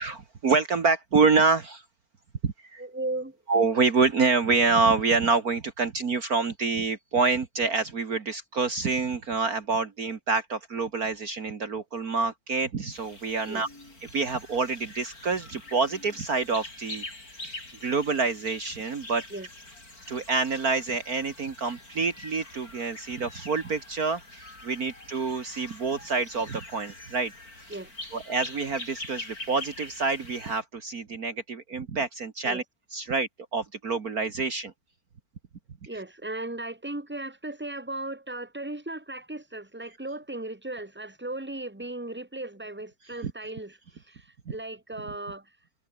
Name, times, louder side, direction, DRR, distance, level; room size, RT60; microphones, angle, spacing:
voice 1, 0.0-1.8 2.4-2.8 3.5-13.7 14.0-17.1 17.4-19.2 20.1-27.3 27.7-27.8 28.1-32.6 32.9-34.7 35.9-36.0 43.2-43.3, right 4 dB, 50° right, 2.2 m, -27 dB
voice 2, 2.8-3.4 13.5-13.6 19.3-19.5 27.7-27.9 32.5-32.6 35.9-43.7 44.1-44.2 44.5-45.4, right 2 dB, 5° right, 3.0 m, -36 dB
sound 1, 12.9-30.6, left 2 dB, 50° left, 7.7 m, -44 dB
omnidirectional pair, 2.1 m